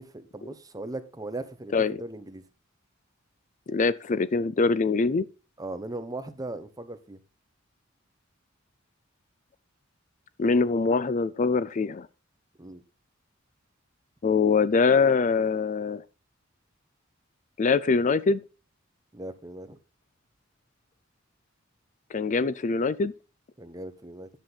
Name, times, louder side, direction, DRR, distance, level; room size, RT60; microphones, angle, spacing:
voice 1, 0.0-2.4 5.6-7.2 12.6-12.8 19.1-19.8 23.6-24.3, right 2 dB, 20° right, 1.1 m, -38 dB
voice 2, 3.7-5.3 10.4-12.1 14.2-16.0 17.6-18.4 22.1-23.1, left 4 dB, 40° left, 0.4 m, -23 dB
10.5 x 7.5 x 4.1 m
head